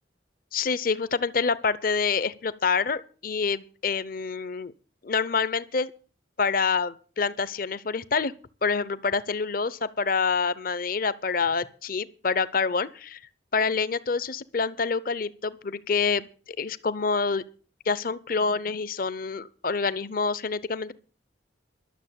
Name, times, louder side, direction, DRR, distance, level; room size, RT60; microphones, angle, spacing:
voice 1, 0.5-4.7 5.0-5.9 6.4-8.3 8.6-13.2 13.5-17.4 17.9-20.9, left 5 dB, 50° left, 0.7 m, -27 dB
12.0 x 7.1 x 8.5 m
head